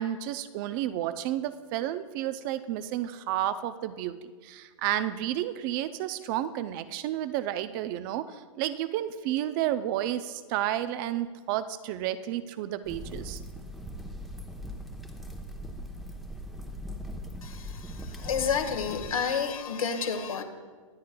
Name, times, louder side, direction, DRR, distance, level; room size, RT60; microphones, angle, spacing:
voice 1, 0.0-4.2 4.4-13.4, right 12 dB, 40° right, 13 dB, 0.5 m, -31 dB
sound 1, 12.8-19.1, equal, ahead, 0.9 m, -40 dB
voice 2, 17.4-20.4, left 6 dB, 90° left, 5 dB, 1.6 m, -30 dB
24.5 x 8.5 x 2.3 m, 1.5 s
hypercardioid pair, 130°, 17 cm